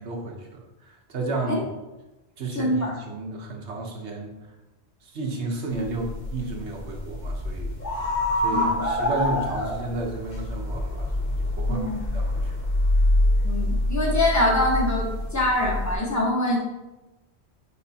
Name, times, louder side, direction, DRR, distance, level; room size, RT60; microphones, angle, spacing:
voice 1, 0.0-1.6 2.4-4.3 5.0-7.7 8.4-11.8 12.1-12.7, right 2 dB, 75° right, 1 dB, 1.3 m, -32 dB
voice 2, 2.5-2.9 8.5-8.8 11.7-12.0 13.4-16.6, left 1 dB, 15° left, -3 dB, 1.4 m, -24 dB
sound 1, 5.7-15.9, left 1 dB, 40° left, 1.4 m, -26 dB
8.4 x 4.5 x 2.9 m, 1.1 s
omnidirectional pair, 1.2 m